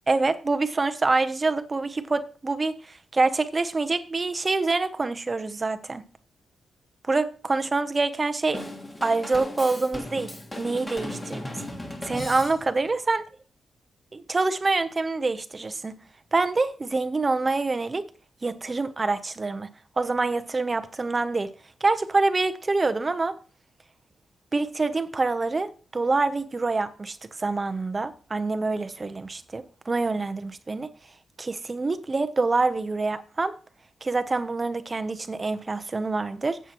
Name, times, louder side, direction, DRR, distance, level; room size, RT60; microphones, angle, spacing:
voice 1, 0.1-6.0 7.1-8.6 9.0-10.3 10.6-11.5 12.0-13.2 14.1-16.0 16.3-18.0 18.4-19.7 20.0-21.5 21.8-23.4 24.5-30.9 31.4-33.5 34.0-36.6, right 3 dB, 20° right, 0.6 m, -26 dB
Drum kit / Drum, 8.5-12.9, left 1 dB, 15° left, 1.7 m, -36 dB
13.5 x 8.0 x 2.9 m
wide cardioid pair, 175°, 0 cm